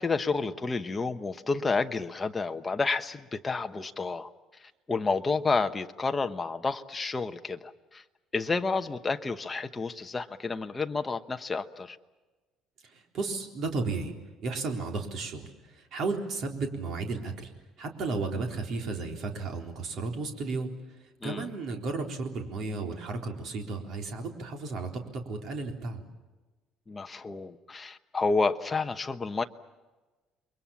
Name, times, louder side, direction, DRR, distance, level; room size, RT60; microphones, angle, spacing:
voice 1, 0.0-4.3 4.6-8.0 8.3-12.0 21.2-21.5 26.9-29.4, left 4 dB, 15° left, 7 dB, 1.0 m, -30 dB
voice 2, 12.9-14.1 14.4-17.5 17.8-20.7 21.2-26.0, right 3 dB, 45° right, 3 dB, 3.9 m, -33 dB
29.5 x 22.5 x 7.2 m, 1.2 s
cardioid pair, 165°, 0 cm